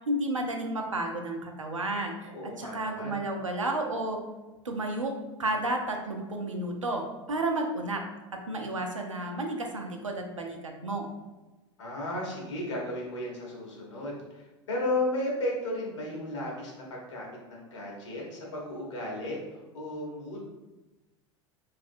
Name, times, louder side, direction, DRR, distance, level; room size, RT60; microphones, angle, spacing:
voice 1, 0.1-4.2 4.6-8.0 8.3-11.1, right 1 dB, 90° right, 2 dB, 0.5 m, -32 dB
voice 2, 2.3-3.2 11.8-20.4, left 1 dB, 70° left, -3 dB, 1.2 m, -34 dB
3.2 x 2.5 x 2.7 m, 1.1 s
figure-of-eight pair, 80°, 16 cm